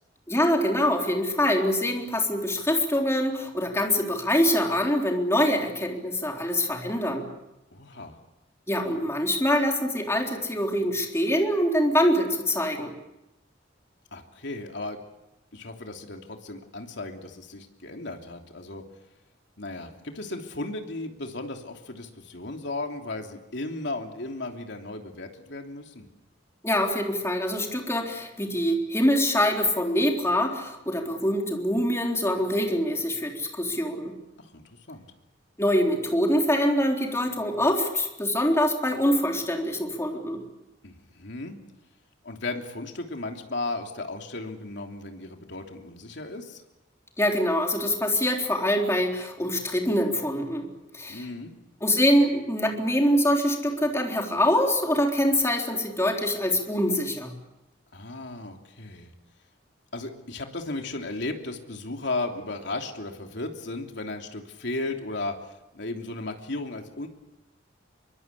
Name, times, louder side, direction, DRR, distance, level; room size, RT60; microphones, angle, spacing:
voice 1, 0.3-7.3 8.7-12.9 26.6-34.1 35.6-40.4 47.2-50.7 50.9-51.3 51.8-57.3, left 1 dB, 15° left, 1 dB, 3.9 m, -24 dB
voice 2, 7.7-8.2 14.1-15.0 15.5-18.8 19.6-26.1 34.4-35.1 40.8-41.6 42.2-46.6 51.1-51.5 57.9-59.1 59.9-65.3 65.7-67.1, left 2 dB, 65° left, 3 dB, 3.2 m, -35 dB
24.5 x 23.5 x 8.5 m, 0.94 s
head